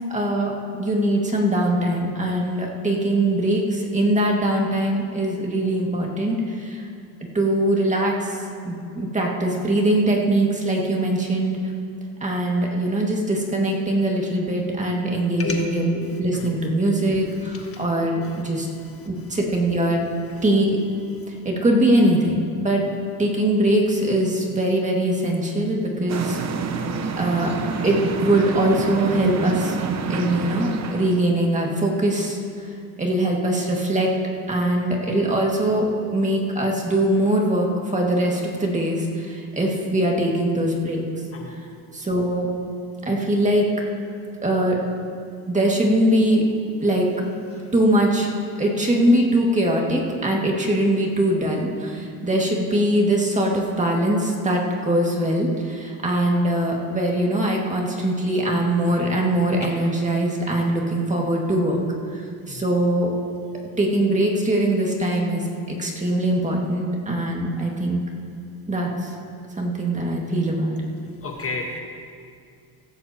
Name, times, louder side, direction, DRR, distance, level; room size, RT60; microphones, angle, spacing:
voice 1, 0.1-6.9 7.3-11.6 12.2-18.7 19.0-20.1 20.4-20.8 21.4-22.9 23.2-26.4 27.2-27.5 27.8-29.8 30.1-32.4 32.7-34.1 34.5-41.0 41.5-41.6 41.9-42.5 43.1-43.7 44.4-44.8 45.5-46.5 46.8-47.1 47.7-48.3 48.6-61.8 62.1-62.2 62.5-63.1 63.8-68.0 68.7-69.1 69.6-70.8, right 1 dB, 20° right, -1 dB, 2.1 m, -22 dB
voice 2, 16.0-16.5 17.7-17.8 41.3-41.5 62.5-62.6 71.2-71.8, left 4 dB, 35° left, 1 dB, 1.4 m, -31 dB
sound 1, 26.1-31.3, right 4 dB, 40° right, 1.0 m, -27 dB
16.0 x 14.5 x 2.9 m, 2.3 s
cardioid pair, 110°, 40 cm